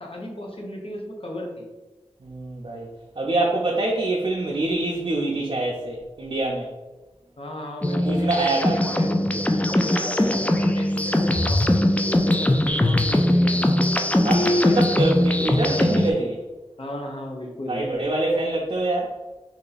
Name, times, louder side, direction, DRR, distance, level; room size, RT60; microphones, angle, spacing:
voice 1, 0.0-1.7 7.4-9.1 9.5-13.7 14.2-14.8 16.8-17.8, left 1 dB, 60° left, 0 dB, 0.9 m, -32 dB
voice 2, 2.2-2.9 3.2-6.7 8.0-8.8 14.2-16.4 17.7-19.1, right 2 dB, 50° right, -3 dB, 0.5 m, -25 dB
sound 1, 7.8-16.1, left 1 dB, 15° left, 0.3 m, -21 dB
3.0 x 2.8 x 3.9 m, 1.1 s
wide cardioid pair, 55°, 11 cm